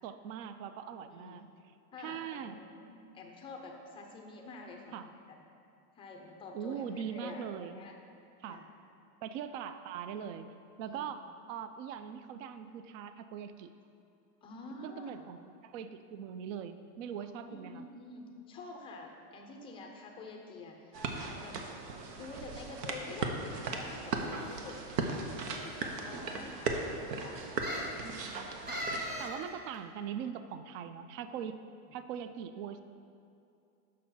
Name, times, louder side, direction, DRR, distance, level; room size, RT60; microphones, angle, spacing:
voice 1, 0.0-2.6 4.9-5.1 6.5-7.9 8.4-8.6 9.2-10.5 10.8-13.7 14.8-17.9 28.0-31.6 31.9-32.8, right 8 dB, 55° right, 11 dB, 0.5 m, -42 dB
voice 2, 1.1-1.4 1.9-5.4 5.9-7.9 8.5-8.7 10.8-11.1 14.4-15.3 17.2-21.6 22.2-25.2 25.5-27.6, left 2 dB, 10° left, 2 dB, 0.4 m, -48 dB
sound 1, 20.9-29.3, right 3 dB, 85° right, 1.1 m, -37 dB
sound 2, 24.2-24.7 25.5-25.6 25.9-26.0 27.6-28.0 28.7-29.4 29.7-29.8, equal, 20° right, 1.2 m, -39 dB
6.7 x 6.3 x 5.6 m, 2.6 s
supercardioid pair, 140°, 47 cm